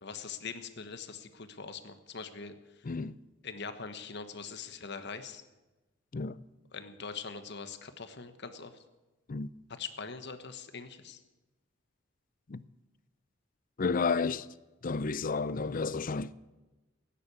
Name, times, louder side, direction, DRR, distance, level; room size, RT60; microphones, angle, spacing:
voice 1, 0.0-2.9 3.4-5.4 6.7-8.7 9.7-11.2, left 5 dB, 60° left, 1.3 m, -42 dB
voice 2, 2.8-3.1 6.1-6.4 9.3-9.5 12.5-12.6 13.8-14.5 14.8-16.3, left 4 dB, 45° left, 0.5 m, -31 dB
16.5 x 10.0 x 8.3 m
head